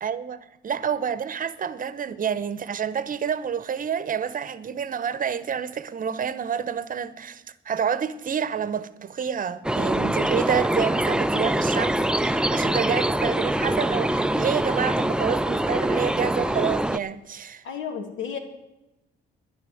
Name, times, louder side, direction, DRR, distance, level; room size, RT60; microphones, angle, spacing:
voice 1, 0.0-17.6, right 7 dB, 45° right, 0.9 m, -28 dB
sound 1, 9.6-17.0, right 1 dB, 5° right, 0.4 m, -24 dB
voice 2, 17.6-18.4, left 7 dB, 75° left, 2.4 m, -32 dB
11.0 x 10.5 x 7.8 m
cardioid pair, 90°, 20 cm